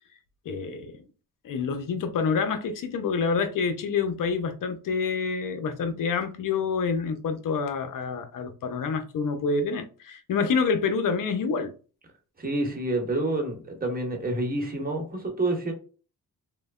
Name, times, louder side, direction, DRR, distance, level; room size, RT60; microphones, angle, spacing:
voice 1, 0.5-0.9 1.4-11.7, left 5 dB, 60° left, 0.6 m, -27 dB
voice 2, 12.4-15.7, right 2 dB, 25° right, 1.1 m, -28 dB
3.1 x 2.1 x 2.3 m
cardioid pair, 70°, 37 cm